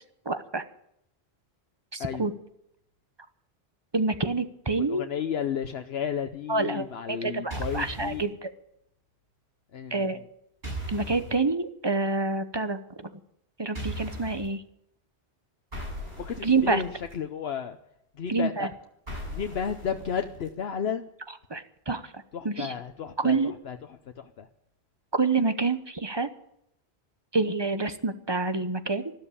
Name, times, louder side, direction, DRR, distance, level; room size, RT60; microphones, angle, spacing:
voice 1, 0.3-0.6 1.9-2.3 3.9-5.0 6.5-8.5 9.9-10.2 10.9-12.8 13.6-14.6 16.4-16.8 18.3-18.7 21.5-22.7 23.2-23.5 25.1-26.3 27.3-29.1, right 3 dB, 25° right, 11 dB, 0.9 m, -27 dB
voice 2, 4.8-8.2 9.7-10.2 16.2-17.8 18.2-18.7 19.3-21.1 22.3-24.5, left 7 dB, 70° left, 7 dB, 1.0 m, -33 dB
sound 1, 7.5-8.2 10.6-11.3 13.7-14.5 15.7-17.1 19.1-20.5, right 1 dB, 70° right, 7.1 m, -37 dB
13.5 x 12.5 x 8.6 m, 0.77 s
omnidirectional pair, 1.1 m